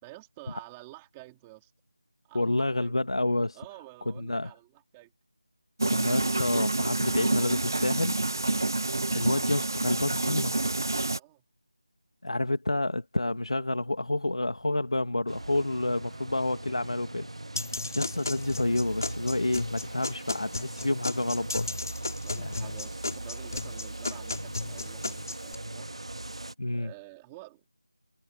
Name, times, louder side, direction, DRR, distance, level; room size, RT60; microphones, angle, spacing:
voice 1, 0.0-1.7 2.2-3.3 3.5-5.1 11.1-11.4 22.0-26.1 26.7-27.7, right 20 dB, 5° right, 2.4 m, -50 dB
voice 2, 2.3-3.6 4.1-4.5 5.8-8.2 9.1-10.6 12.2-17.3 18.0-21.7 22.4-22.5 26.6-26.9, left 2 dB, 85° left, 2.1 m, -29 dB
sound 1, 5.8-11.2, right 2 dB, 40° right, 0.4 m, -28 dB
sound 2, 15.3-26.5, right 2 dB, 90° right, 1.8 m, -40 dB
sound 3, 17.6-25.5, left 3 dB, 40° left, 5.3 m, -35 dB
figure-of-eight pair, 180°, 3 cm